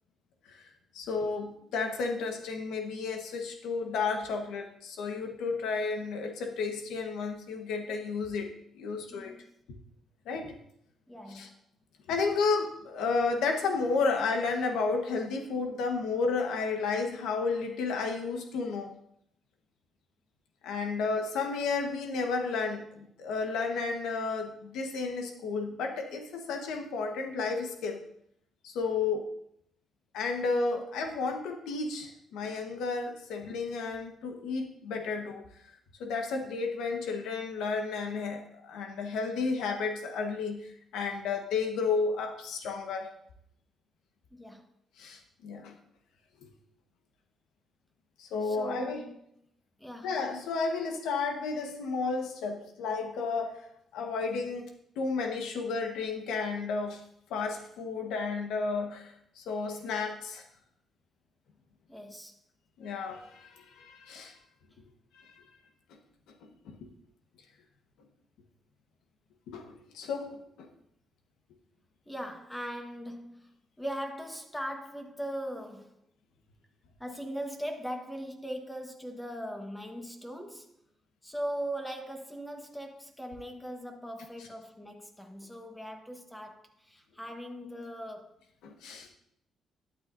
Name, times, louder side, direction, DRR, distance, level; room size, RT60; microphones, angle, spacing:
voice 1, 0.9-9.4 10.2-10.5 11.3-11.5 12.1-18.9 20.6-28.0 28.6-29.3 30.1-35.4 36.0-43.1 45.0-45.7 46.4-46.5 48.2-49.0 50.0-53.6 53.9-54.7 55.0-57.0 57.3-60.4 62.8-64.3 65.1-65.4 66.6-66.9 69.5-70.7 88.6-89.1, left 4 dB, 90° left, 1.3 m, -32 dB
voice 2, 9.1-9.5 11.1-11.5 21.1-21.2 44.3-44.7 48.4-49.1 49.8-50.2 61.9-62.4 72.1-76.0 77.0-80.8 81.2-88.3, equal, 10° left, 1.3 m, -40 dB
12.0 x 8.9 x 2.7 m
cardioid pair, 90°, 0 cm